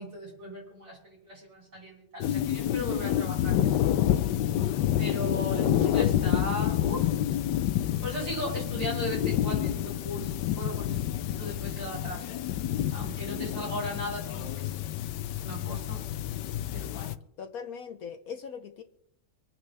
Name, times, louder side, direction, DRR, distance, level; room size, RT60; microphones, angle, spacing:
voice 1, 0.0-3.8 5.0-7.1 8.0-12.3 12.9-14.7 15.4-16.0 16.7-17.2, equal, 70° right, -8 dB, 5.7 m, -37 dB
sound 1, 2.2-17.2, left 11 dB, 85° left, 1.3 m, -28 dB
voice 2, 5.8-6.2 17.4-18.8, left 7 dB, 65° left, 8 dB, 1.1 m, -39 dB
25.5 x 9.1 x 3.3 m, 0.80 s
omnidirectional pair, 1.8 m